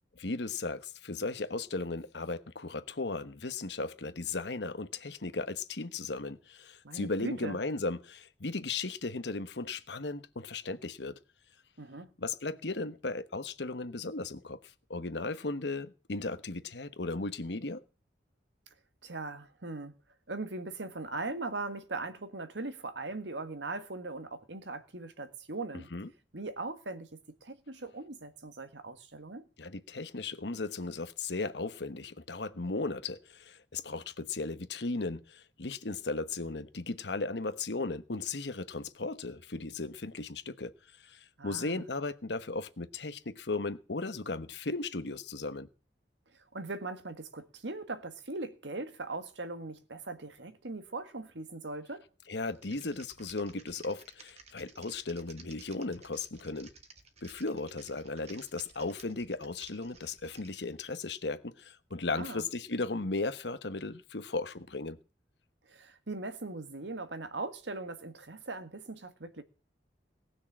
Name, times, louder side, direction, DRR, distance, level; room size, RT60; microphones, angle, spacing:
voice 1, 0.2-11.2 12.2-17.8 25.9-26.1 29.6-40.7 41.0-45.7 52.3-56.7 57.2-65.0, left 3 dB, 70° left, 1.1 m, -36 dB
voice 2, 6.8-7.6 11.8-12.1 19.0-19.9 20.3-25.9 26.3-29.4 41.4-41.9 46.5-52.0 62.1-62.5 65.7-69.4, right 3 dB, 85° right, 1.8 m, -40 dB
Typing, 52.5-60.7, right 4 dB, 40° right, 2.0 m, -55 dB
18.5 x 6.5 x 7.5 m
head